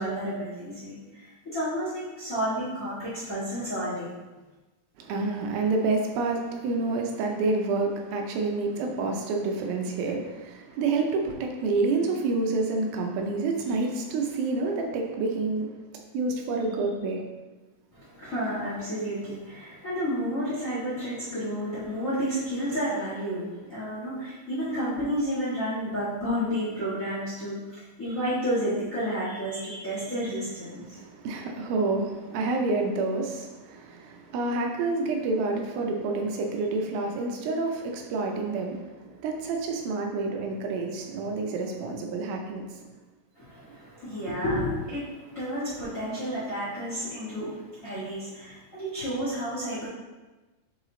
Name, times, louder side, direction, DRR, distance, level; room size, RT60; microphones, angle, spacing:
voice 1, 0.0-4.1 17.9-31.0 43.3-49.9, equal, 35° left, -11 dB, 1.3 m, -31 dB
voice 2, 5.0-15.7 16.1-17.2 30.7-42.7, right 3 dB, 80° right, 2 dB, 2.5 m, -28 dB
5.5 x 4.7 x 3.8 m, 1.2 s
omnidirectional pair, 4.2 m